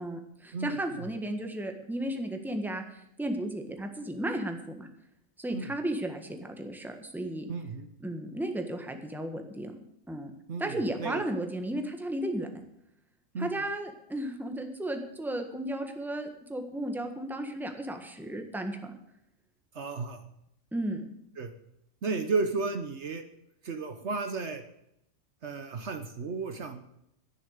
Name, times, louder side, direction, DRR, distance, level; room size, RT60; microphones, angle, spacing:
voice 1, 0.0-2.8 3.2-4.9 5.4-7.5 8.0-9.7 10.1-10.3 10.6-12.5 13.4-18.9 20.7-21.1, right 1 dB, ahead, 4 dB, 1.4 m, -34 dB
voice 2, 7.5-7.9 10.5-11.2 13.3-13.5 19.7-20.2 21.4-21.5 22.0-23.2 23.6-24.6 25.4-26.8, right 4 dB, 60° right, 8 dB, 1.2 m, -33 dB
11.0 x 10.0 x 6.5 m, 0.79 s
omnidirectional pair, 1.4 m